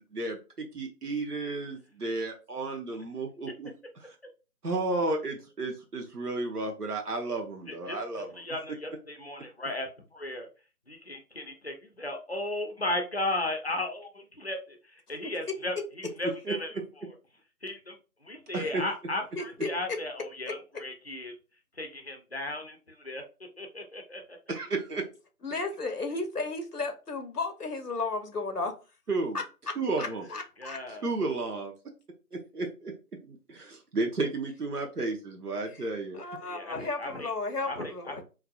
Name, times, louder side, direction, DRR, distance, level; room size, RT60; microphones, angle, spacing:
voice 1, 0.1-3.7 4.0-4.1 4.6-8.3 16.5-16.6 18.5-18.8 24.5-25.0 29.1-29.4 29.8-30.2 31.0-31.7 32.3-32.9 33.2-36.2, right 3 dB, 80° right, 0.9 m, -32 dB
voice 2, 7.7-10.5 10.9-16.7 17.6-21.3 21.7-23.2 23.6-24.4 30.3-31.1 36.5-37.3 37.7-38.2, left 1 dB, 45° left, 0.6 m, -36 dB
voice 3, 19.4-20.0 25.4-28.7 29.3-30.8 35.7-35.9 36.1-38.2, left 3 dB, 80° left, 0.9 m, -34 dB
4.6 x 2.4 x 2.3 m
figure-of-eight pair, 170°, 45 cm